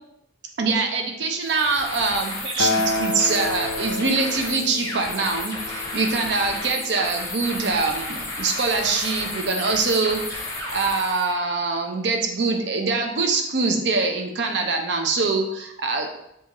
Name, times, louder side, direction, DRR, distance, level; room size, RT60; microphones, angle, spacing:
voice 1, 0.6-16.1, right 3 dB, 70° right, 3 dB, 0.6 m, -24 dB
sound 1, 1.4-11.3, left 2 dB, 15° left, 0.6 m, -32 dB
Acoustic guitar, 2.6-6.9 7.7-7.8, left 2 dB, 65° left, 0.4 m, -29 dB
5.5 x 2.5 x 2.9 m, 0.79 s
head